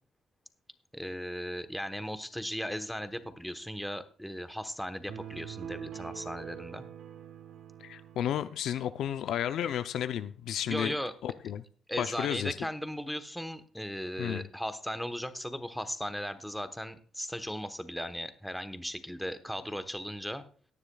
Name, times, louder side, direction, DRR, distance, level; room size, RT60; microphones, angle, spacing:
voice 1, 0.9-6.8 10.7-11.1 11.9-20.4, equal, ahead, 1.1 m, -37 dB
sound 1, 5.1-8.6, right 9 dB, 70° right, 1.1 m, -44 dB
voice 2, 7.8-11.0 11.2-11.6 12.0-12.5 14.2-14.5, left 10 dB, 75° left, 0.5 m, -32 dB
17.0 x 9.8 x 2.3 m
cardioid pair, 90°, 0 cm